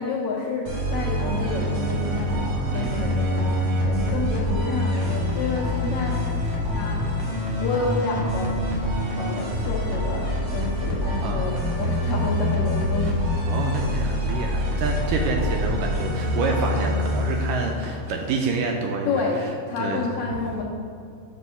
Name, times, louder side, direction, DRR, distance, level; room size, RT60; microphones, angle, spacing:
voice 1, 0.0-3.6 3.8-6.2 6.7-7.0 7.6-8.6 9.1-13.1 15.8-15.9 19.0-19.4 19.7-20.6, left 4 dB, 80° left, -3 dB, 1.6 m, -29 dB
sound 1, 0.7-18.1, left 1 dB, 50° right, 2.0 m, -25 dB
voice 2, 2.7-3.1 11.2-11.6 13.5-19.2 19.8-20.0, right 4 dB, 80° right, 1 dB, 2.0 m, -28 dB
6.3 x 5.3 x 5.4 m, 2.4 s
omnidirectional pair, 4.2 m